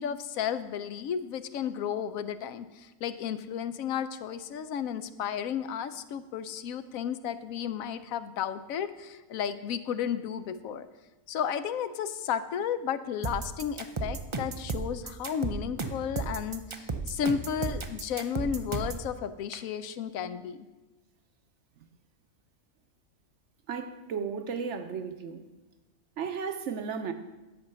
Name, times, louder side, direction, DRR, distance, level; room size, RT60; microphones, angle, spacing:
voice 1, 0.0-10.9 11.3-20.7, left 8 dB, 75° left, 1.0 m, -33 dB
sound 1, 13.2-19.1, right 4 dB, 45° right, 0.4 m, -33 dB
voice 2, 23.7-25.5 26.2-27.1, right 6 dB, 60° right, 0.9 m, -34 dB
10.5 x 5.3 x 6.8 m
omnidirectional pair, 1.5 m